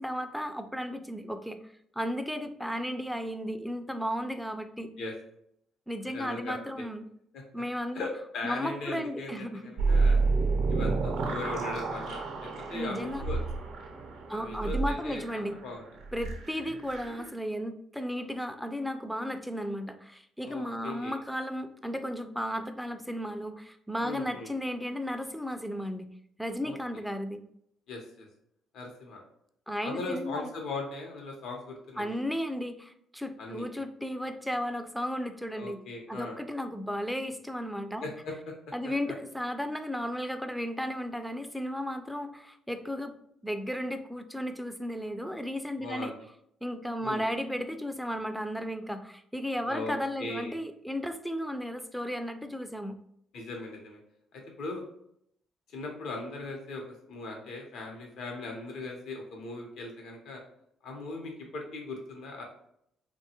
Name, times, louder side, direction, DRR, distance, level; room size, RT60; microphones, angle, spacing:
voice 1, 0.0-1.6 1.9-4.9 5.9-7.1 7.5-8.1 8.4-9.7 12.7-13.2 14.3-15.6 16.1-26.1 26.4-27.4 29.7-30.5 32.0-35.8 36.1-38.0 38.7-43.1 43.4-46.1 46.6-53.0, equal, ahead, 9 dB, 0.3 m, -34 dB
voice 2, 6.1-6.9 7.3-7.4 7.9-10.2 10.7-13.4 14.3-15.8 20.4-21.1 24.0-24.5 26.6-26.7 27.9-28.3 28.7-29.2 29.8-32.2 33.4-33.7 35.5-36.4 38.0-38.3 45.8-46.2 47.0-47.2 49.7-50.6 53.3-54.0 54.3-54.8 55.7-60.4 60.8-62.4, left 2 dB, 70° left, 1 dB, 0.8 m, -39 dB
sound 1, 9.8-17.3, right 3 dB, 75° right, 0.5 m, -30 dB
2.8 x 2.2 x 2.8 m, 0.71 s
supercardioid pair, 65°, 0 cm